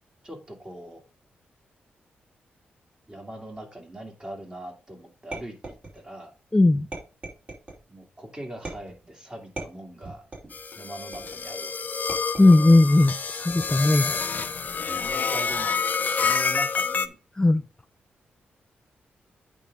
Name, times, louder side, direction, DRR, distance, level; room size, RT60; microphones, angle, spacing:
voice 1, 0.2-1.0 3.1-6.3 7.9-10.2 10.8-12.2 14.0-14.3 15.1-17.2, right 1 dB, 20° right, 2.5 m, -41 dB
sound 1, 5.3-6.2 6.9-7.8 8.6-9.1 9.6-10.6 11.1-11.5 12.1-12.7 13.5-14.0, right 2 dB, 40° right, 4.3 m, -39 dB
voice 2, 6.5-6.9 12.4-14.1 17.4-17.6, left 2 dB, 15° left, 0.4 m, -18 dB
sound 2, 10.5-17.1, left 5 dB, 45° left, 0.7 m, -28 dB
8.9 x 3.6 x 5.3 m
cardioid pair, 75°, 4 cm